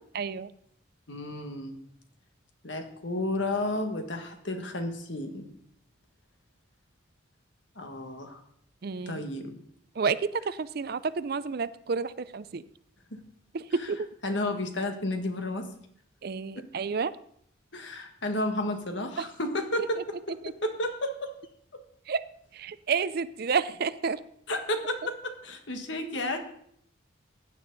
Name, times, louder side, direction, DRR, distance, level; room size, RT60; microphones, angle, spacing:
voice 1, 0.1-0.5 8.8-9.2 10.0-12.6 13.5-14.1 16.2-17.1 19.2-19.3 22.1-22.2 22.5-24.2, right 5 dB, 50° right, 16 dB, 0.4 m, -30 dB
voice 2, 1.1-1.8 2.6-5.5 7.7-8.4 9.1-9.6 13.1-13.2 13.8-13.9 14.2-15.7 16.5-16.7 17.7-20.4 20.6-21.3 21.7-21.8 24.5-26.4, left 1 dB, 60° left, 5 dB, 1.7 m, -32 dB
15.5 x 9.4 x 4.0 m, 0.69 s
head